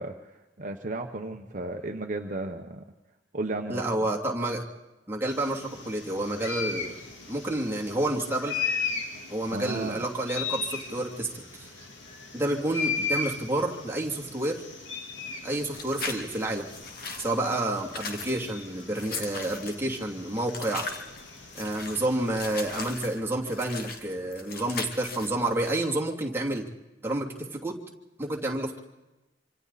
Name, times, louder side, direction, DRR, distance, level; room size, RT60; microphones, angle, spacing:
voice 1, 0.0-2.8 3.3-3.8 9.5-10.0, right 2 dB, 45° right, 3 dB, 1.1 m, -34 dB
voice 2, 3.7-4.6 5.1-7.0 7.3-8.6 9.3-11.7 12.3-14.6 15.4-16.7 17.2-20.9 21.5-26.7 27.0-27.8 28.2-28.8, right 1 dB, 10° right, -2 dB, 2.8 m, -29 dB
sound 1, 5.3-23.0, left 5 dB, 80° left, 3.3 m, -37 dB
sound 2, 15.6-25.7, left 4 dB, 55° left, 2.5 m, -39 dB
26.5 x 26.0 x 4.2 m, 1.1 s
head